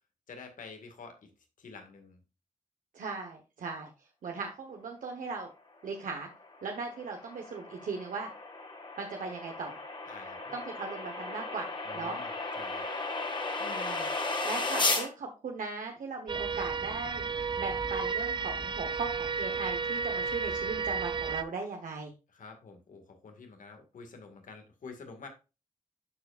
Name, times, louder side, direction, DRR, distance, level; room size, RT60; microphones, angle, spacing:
voice 1, 0.3-1.3 1.6-2.2 10.1-10.6 11.8-12.8 22.3-25.3, left 4 dB, 85° left, 5 dB, 2.0 m, -48 dB
voice 2, 2.9-3.9 4.2-5.5 5.8-6.3 6.6-8.3 9.0-9.8 10.5-12.2 13.6-14.1 14.4-22.1, right 4 dB, 90° right, 2 dB, 1.2 m, -38 dB
sound 1, 6.4-15.1, left 3 dB, 35° left, 1.9 m, -35 dB
sound 2, 16.3-21.4, right 5 dB, 35° right, 0.6 m, -32 dB
12.0 x 4.8 x 2.5 m, 0.29 s
cardioid pair, 70°, 13 cm